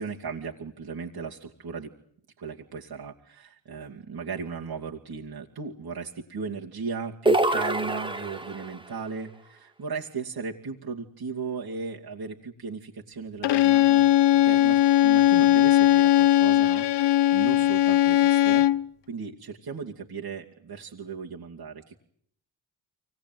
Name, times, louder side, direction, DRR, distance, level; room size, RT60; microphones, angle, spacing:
voice 1, 0.0-1.9 2.4-14.0 14.4-18.7 19.1-22.0, right 5 dB, 55° right, -1 dB, 2.6 m, -36 dB
sound 1, 7.3-8.8, right 2 dB, 10° right, 1.8 m, -25 dB
Bowed string instrument, 13.4-18.9, left 13 dB, 65° left, 0.9 m, -19 dB
24.0 x 18.5 x 9.4 m, 0.66 s
supercardioid pair, 50°, 45 cm